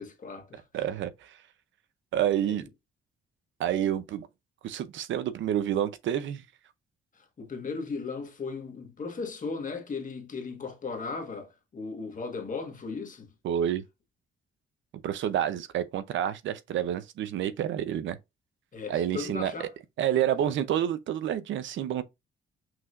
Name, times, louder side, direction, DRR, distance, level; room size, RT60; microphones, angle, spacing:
voice 1, 0.0-0.6 2.5-2.6 7.1-13.3 18.7-19.7 20.3-20.5, left 4 dB, 40° left, 1.7 m, -37 dB
voice 2, 0.7-1.4 2.1-2.7 3.6-4.3 4.6-6.4 13.4-13.8 15.0-18.2 18.9-19.7 20.0-22.0, right 10 dB, 75° right, 0.7 m, -29 dB
6.1 x 2.8 x 2.5 m
cardioid pair, 90°, 20 cm